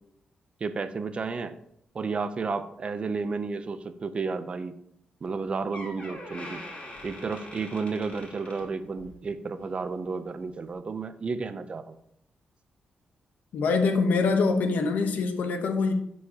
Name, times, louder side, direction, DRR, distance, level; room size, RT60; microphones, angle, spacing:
voice 1, 0.6-1.5 1.9-4.8 5.2-6.6 7.0-12.0, right 4 dB, 40° right, 11 dB, 0.6 m, -32 dB
Door, 5.3-5.4 5.7-9.2 9.6-9.9 10.6-10.7, left 1 dB, 45° left, 2.8 m, -43 dB
voice 2, 13.5-15.9, left 4 dB, 80° left, 6 dB, 1.0 m, -24 dB
11.5 x 4.8 x 2.9 m, 0.71 s
cardioid pair, 100°, 3 cm